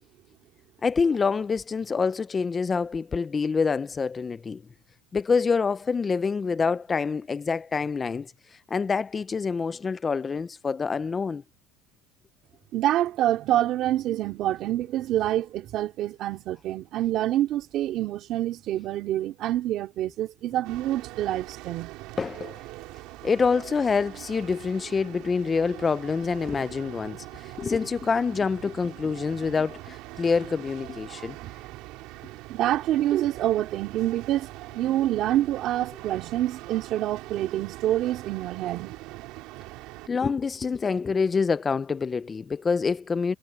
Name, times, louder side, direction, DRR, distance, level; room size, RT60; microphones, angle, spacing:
voice 1, 0.8-4.6 5.1-11.4 22.2-22.6 23.2-31.3 40.1-43.3, left 5 dB, 20° left, 0.3 m, -26 dB
voice 2, 12.7-21.9 27.5-27.7 31.4-31.5 32.5-39.0, right 13 dB, 50° right, 2.4 m, -27 dB
sound 1, 20.6-40.1, right 19 dB, 65° right, 3.6 m, -42 dB
cardioid pair, 155°, 0 cm